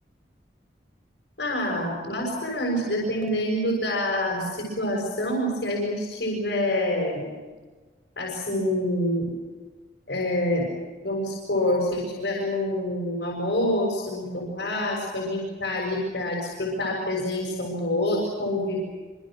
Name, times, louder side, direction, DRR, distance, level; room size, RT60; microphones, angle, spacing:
voice 1, 1.4-7.3 8.2-9.2 10.1-10.7 11.0-18.8, left 1 dB, 65° left, -2 dB, 6.5 m, -27 dB
26.5 x 26.0 x 6.4 m, 1.3 s
head